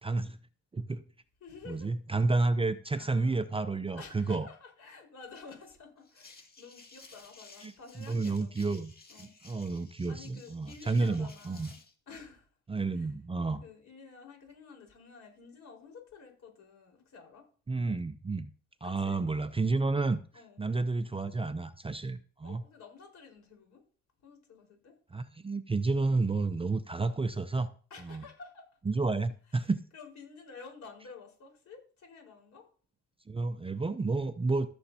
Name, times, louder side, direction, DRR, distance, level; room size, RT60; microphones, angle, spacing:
voice 1, 0.0-0.4 0.7-1.0 1.7-4.5 7.6-7.7 8.1-8.9 9.2-11.7 12.7-13.6 17.7-18.5 18.8-20.2 20.6-22.6 25.1-27.7 28.0-28.2 28.9-29.8 33.3-34.7, right 3 dB, 20° right, 11 dB, 0.5 m, -30 dB
voice 2, 1.4-1.9 2.9-3.4 3.9-8.5 9.1-9.6 10.1-11.8 12.1-12.5 12.9-13.1 13.6-17.5 18.8-19.2 20.3-20.6 22.4-23.8 24.2-24.9 27.9-28.6 29.5-32.7, left 5 dB, 65° left, 1 dB, 4.6 m, -51 dB
sound 1, 6.0-11.9, left 3 dB, 30° left, 2.1 m, -55 dB
15.0 x 7.0 x 2.8 m, 0.41 s
cardioid pair, 90°, 30 cm